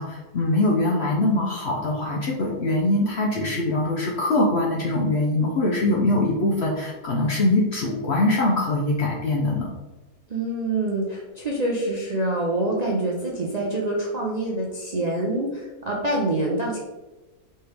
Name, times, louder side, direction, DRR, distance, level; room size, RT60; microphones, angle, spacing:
voice 1, 0.0-9.7, left 2 dB, 60° left, -2 dB, 0.8 m, -23 dB
voice 2, 10.3-16.8, right 2 dB, 75° right, -3 dB, 0.3 m, -26 dB
4.4 x 3.3 x 3.3 m, 1.1 s
omnidirectional pair, 1.6 m